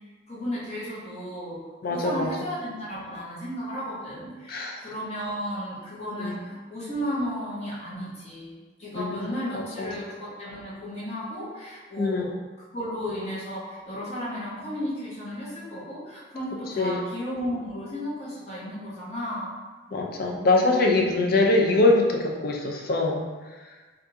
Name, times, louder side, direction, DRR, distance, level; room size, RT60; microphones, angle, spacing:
voice 1, 0.3-8.5 8.8-12.3 12.7-19.5 20.6-21.1, equal, 35° left, -8 dB, 1.0 m, -34 dB
voice 2, 1.8-2.3 4.5-4.8 6.2-6.4 8.9-9.2 9.8-9.9 12.0-12.3 16.8-17.0 19.9-23.2, left 2 dB, 55° left, 1 dB, 0.4 m, -23 dB
3.5 x 2.4 x 2.7 m, 1.3 s
head